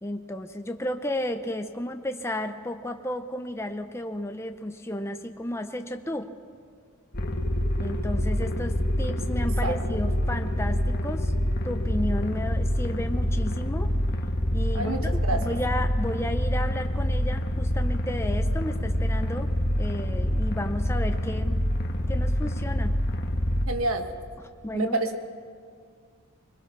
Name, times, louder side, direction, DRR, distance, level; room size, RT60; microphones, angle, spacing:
voice 1, 0.0-6.3 7.8-11.3 11.6-13.9 14.5-21.6 22.1-22.9 24.6-25.0, left 1 dB, 10° left, 6 dB, 0.6 m, -33 dB
sound 1, 7.1-23.7, equal, 50° left, 1.5 m, -26 dB
voice 2, 14.7-15.5 23.7-24.0 24.7-25.2, right 2 dB, 75° right, 6 dB, 1.5 m, -28 dB
22.0 x 20.5 x 6.0 m, 2.1 s
head